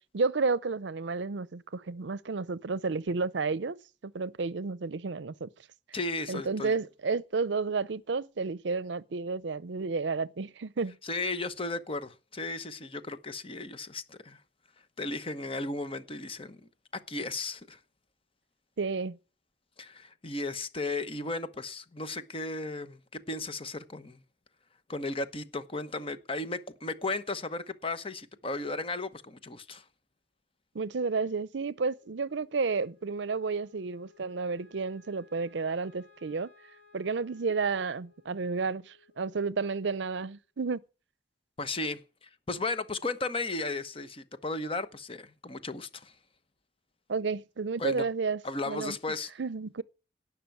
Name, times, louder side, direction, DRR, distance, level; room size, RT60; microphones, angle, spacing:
voice 1, 0.1-3.8 4.0-5.5 6.3-11.0 18.8-19.2 30.7-36.5 36.9-40.8 47.1-48.4 48.7-49.0 49.4-49.8, right 4 dB, 70° right, 0.6 m, -31 dB
voice 2, 5.9-6.7 11.0-14.4 15.0-16.6 16.9-17.8 19.8-24.2 24.9-29.8 41.6-46.1 47.8-48.1 48.4-49.3, left 2 dB, 30° left, 1.0 m, -35 dB
Wind instrument woodwind instrument, 31.9-40.4, left 5 dB, 80° left, 3.8 m, -62 dB
17.5 x 6.0 x 9.1 m
head